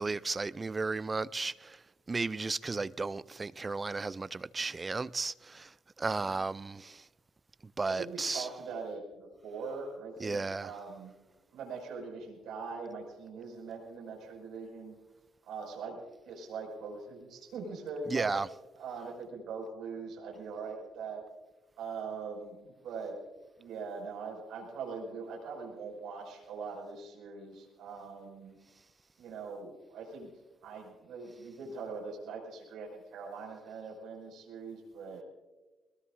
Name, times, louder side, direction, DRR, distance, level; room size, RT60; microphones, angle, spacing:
voice 1, 0.0-1.8 2.1-5.7 6.0-7.0 7.8-8.5 10.2-10.7 18.1-18.5, right 3 dB, 20° right, 0.4 m, -34 dB
voice 2, 7.9-11.1 11.5-15.0 15.4-16.0 16.2-18.3 18.8-21.2 21.8-23.2 23.6-28.6 29.2-30.3 30.6-35.2, right 4 dB, 75° right, 5.7 m, -42 dB
22.5 x 21.0 x 2.6 m
cardioid pair, 120°, 0 cm